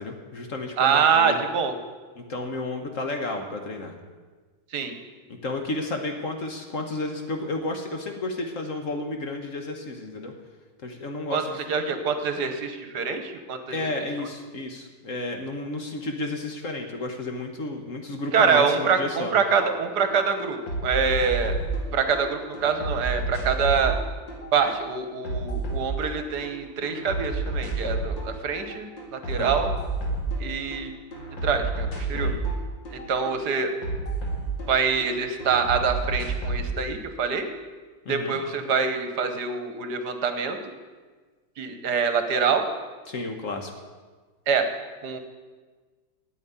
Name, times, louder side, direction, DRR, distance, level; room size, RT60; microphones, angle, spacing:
voice 1, 0.0-1.4 2.2-4.0 5.3-10.3 10.8-11.6 13.7-19.3 29.4-29.6 32.1-32.4 38.0-38.4 43.1-43.7, left 2 dB, 50° left, 4 dB, 1.3 m, -32 dB
voice 2, 0.8-1.7 4.7-4.9 11.3-11.4 11.7-13.8 18.3-21.5 21.9-24.0 24.5-29.7 30.4-30.9 31.4-32.3 32.9-33.7 34.7-37.5 38.1-40.6 41.6-42.6 44.5-44.7 45.0-45.2, right 6 dB, 65° right, 7 dB, 1.5 m, -25 dB
sound 1, 19.6-19.7 20.0-22.2 22.5-26.5 26.8-28.3 28.6-30.8 31.1-35.1 35.4-36.7, right 2 dB, 90° left, 3.0 m, -30 dB
9.1 x 8.3 x 9.5 m, 1.4 s
omnidirectional pair, 2.0 m